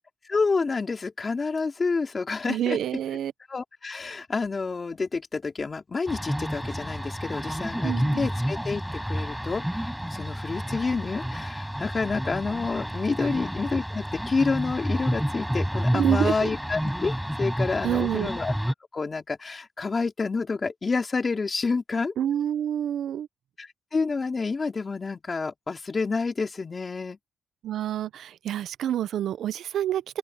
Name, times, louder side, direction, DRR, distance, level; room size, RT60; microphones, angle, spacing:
voice 1, 0.3-2.8 3.5-9.6 10.1-18.5 18.9-22.1 23.6-27.2, left 4 dB, 35° left, 3.4 m, -29 dB
voice 2, 2.5-3.3 7.8-8.3 13.2-13.4 15.9-16.5 17.8-18.3 22.2-23.3 27.6-30.2, right 10 dB, 85° right, 0.6 m, -27 dB
sound 1, 6.1-18.7, equal, ahead, 6.8 m, -30 dB
open air
cardioid pair, 110°, 0 cm